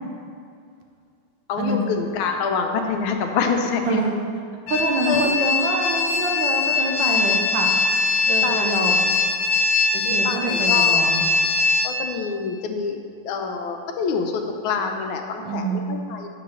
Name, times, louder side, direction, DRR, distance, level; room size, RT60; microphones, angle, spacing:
voice 1, 1.5-4.0 5.1-5.3 8.4-8.9 10.0-11.0 11.8-13.0 13.2-15.8 16.1-16.3, left 5 dB, 90° left, 4 dB, 1.5 m, -26 dB
voice 2, 3.8-4.3 4.7-7.7 8.2-9.1 9.9-11.3 15.4-15.9, right 2 dB, 70° right, 1 dB, 1.4 m, -26 dB
sound 1, 4.7-11.9, left 4 dB, 70° left, 1.0 m, -21 dB
7.4 x 3.9 x 6.1 m, 2.3 s
omnidirectional pair, 2.2 m